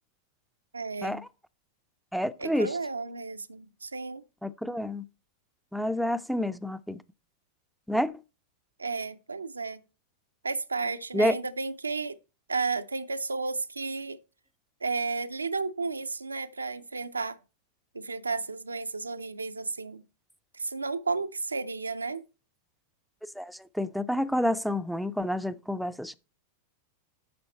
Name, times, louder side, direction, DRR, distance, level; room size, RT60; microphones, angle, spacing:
voice 1, 0.7-1.2 2.4-4.2 8.8-9.8 10.4-12.2 12.5-14.2 14.8-17.4 17.9-20.0 20.5-22.2, right 4 dB, 80° right, 0.5 m, -33 dB
voice 2, 2.1-2.7 4.4-5.0 5.7-7.0 7.9-8.1 11.1-11.4 23.4-26.1, equal, ahead, 0.4 m, -29 dB
9.5 x 6.3 x 4.3 m
figure-of-eight pair, 90°, 0 cm